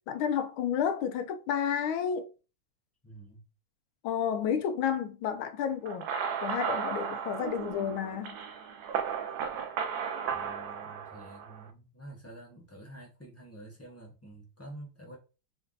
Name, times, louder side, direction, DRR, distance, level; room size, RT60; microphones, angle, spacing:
voice 1, 0.1-2.3 4.0-6.1 6.4-8.4, left 8 dB, 85° left, 1.4 m, -31 dB
voice 2, 3.0-3.4 10.3-15.2, right 1 dB, 10° left, 0.7 m, -48 dB
sound 1, 5.9-11.7, right 7 dB, 75° right, 0.9 m, -35 dB
4.4 x 2.6 x 3.8 m
omnidirectional pair, 2.2 m